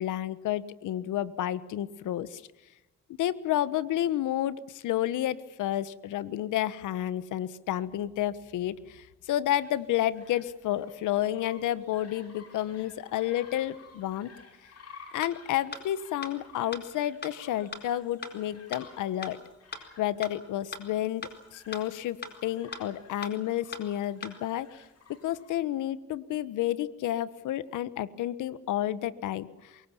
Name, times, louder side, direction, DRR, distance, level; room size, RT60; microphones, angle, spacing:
voice 1, 0.0-2.4 3.1-14.3 15.1-19.4 20.0-22.2 22.4-24.8 25.2-29.8, left 12 dB, 85° left, 16 dB, 1.3 m, -31 dB
sound 1, 9.5-25.6, left 5 dB, 55° left, 6.8 m, -55 dB
sound 2, 15.2-15.3 15.7-15.8 16.2-16.3 16.7-16.8 17.2-17.3 17.7-17.8 18.2-18.3 18.7-18.8 19.2-19.3 19.7-19.8 20.2-20.3 20.7-20.8 21.2-21.3 21.7-21.8 22.2-22.3 22.7-22.8 23.2-23.3 23.7-23.8 24.2-24.3, left 3 dB, 35° left, 4.4 m, -37 dB
24.5 x 22.5 x 7.1 m, 1.1 s
cardioid pair, 90°, 30 cm